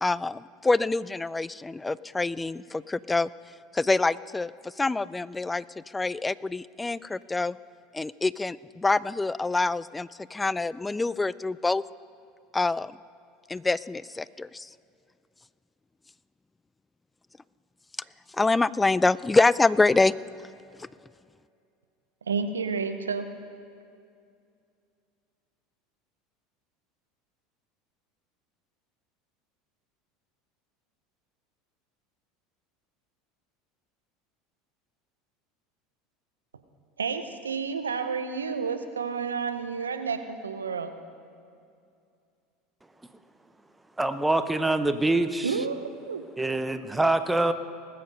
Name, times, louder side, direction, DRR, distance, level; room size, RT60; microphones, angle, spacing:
voice 1, 0.0-3.3 3.7-5.6 5.9-7.6 7.9-11.8 12.5-13.0 13.5-14.7 18.3-20.1 20.8-20.9, left 3 dB, 15° left, 19 dB, 0.3 m, -26 dB
voice 2, 22.3-23.3 37.0-40.9 45.4-46.2, right 5 dB, 85° right, 9 dB, 0.8 m, -30 dB
voice 3, 44.0-45.5 46.4-47.5, right 2 dB, 10° right, 10 dB, 0.7 m, -25 dB
19.5 x 7.8 x 5.3 m, 2.4 s
hypercardioid pair, 75°, 0 cm